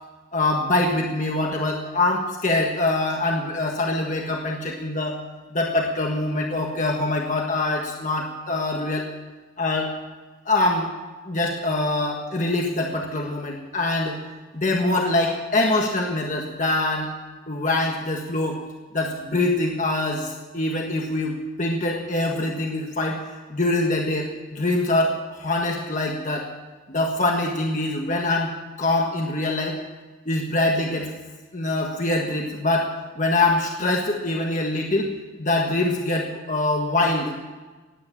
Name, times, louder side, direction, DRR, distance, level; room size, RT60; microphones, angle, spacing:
voice 1, 0.3-5.2 5.5-9.1 9.6-9.9 10.4-10.9 11.2-14.2 14.5-17.1 17.5-18.6 18.9-21.3 21.6-23.2 23.5-26.5 26.9-28.5 28.8-29.8 30.2-31.1 31.5-35.1 35.4-37.3, left 2 dB, 40° left, 0 dB, 1.5 m, -24 dB
18.0 x 9.6 x 7.3 m, 1.3 s
head